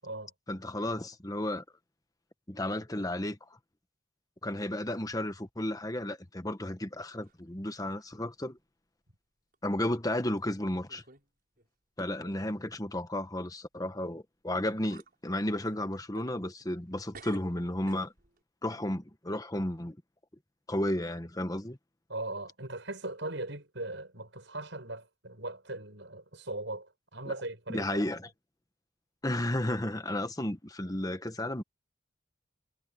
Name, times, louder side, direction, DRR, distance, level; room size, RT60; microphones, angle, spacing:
voice 1, 0.5-1.6 2.5-3.4 4.4-8.6 9.6-11.0 12.0-18.1 18.6-20.0 20.7-21.8 27.3-27.4 27.7-28.3 29.2-31.6, left 1 dB, 20° left, 1.3 m, -33 dB
sound 1, 6.5-7.4 7.7-8.1 8.6-8.7 9.5-9.7 10.4-10.5 10.9-11.3 11.6-11.7 14.2-14.3 14.7-15.2 15.6-16.9 17.1-18.4, right 3 dB, 50° right, 6.3 m, -54 dB
voice 2, 22.1-28.0, right 2 dB, 65° right, 7.4 m, -39 dB
head